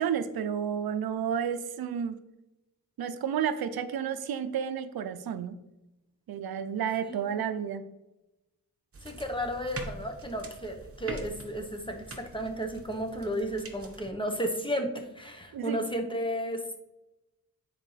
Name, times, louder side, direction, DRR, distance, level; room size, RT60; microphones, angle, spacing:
voice 1, 0.0-2.2 3.0-5.6 6.3-7.8 15.5-15.8, right 8 dB, 85° right, 11 dB, 0.5 m, -31 dB
voice 2, 7.0-7.4 9.0-16.6, equal, 15° left, 3 dB, 1.1 m, -33 dB
sound 1, 8.9-14.1, right 2 dB, 40° right, 1.2 m, -44 dB
9.7 x 4.5 x 3.3 m, 0.97 s
cardioid pair, 70°, 36 cm